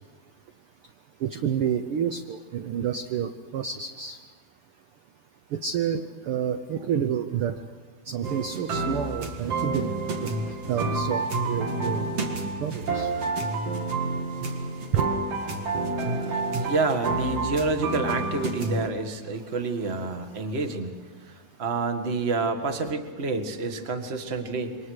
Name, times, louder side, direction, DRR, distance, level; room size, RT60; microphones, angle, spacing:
voice 1, 1.2-4.2 5.5-7.6 8.1-9.9 10.2-10.3 10.7-12.1 12.6-13.1 14.9-15.0, right 8 dB, 70° right, 7 dB, 1.3 m, -29 dB
sound 1, 8.2-18.9, right 3 dB, 55° right, 2.9 m, -29 dB
voice 2, 16.6-21.0 21.6-24.7, right 3 dB, 30° right, 6 dB, 1.3 m, -28 dB
28.0 x 24.5 x 6.5 m, 1.5 s
omnidirectional pair, 3.5 m